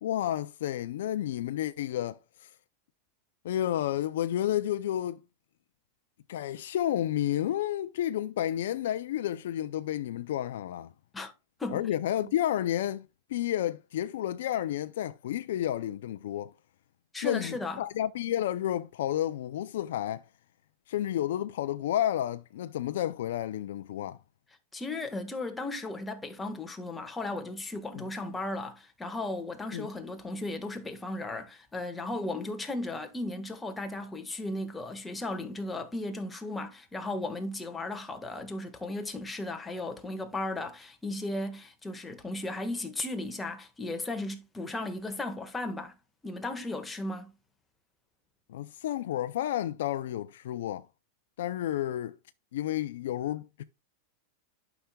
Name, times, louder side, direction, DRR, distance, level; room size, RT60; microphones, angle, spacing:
voice 1, 0.0-2.5 3.4-5.2 6.3-10.9 11.7-16.5 17.2-20.2 20.9-24.2 27.9-28.1 29.7-29.9 48.5-50.9 51.4-52.2 52.5-53.6, left 12 dB, 75° left, 0.4 m, -31 dB
voice 2, 17.1-17.8 24.7-45.9 46.2-47.3, left 2 dB, 10° left, 1.5 m, -36 dB
11.5 x 5.9 x 2.3 m
supercardioid pair, 130°, 0 cm